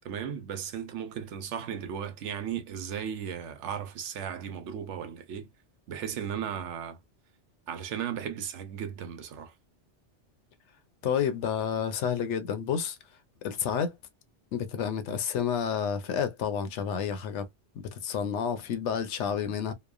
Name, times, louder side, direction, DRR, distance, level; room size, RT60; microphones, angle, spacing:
voice 1, 0.0-5.5 5.9-7.0 7.7-9.5, right 8 dB, 80° right, 1.0 m, -36 dB
voice 2, 11.0-13.0 13.4-13.9 14.5-17.5 17.8-19.7, left 7 dB, 75° left, 0.9 m, -30 dB
3.0 x 2.1 x 2.3 m
omnidirectional pair, 1.2 m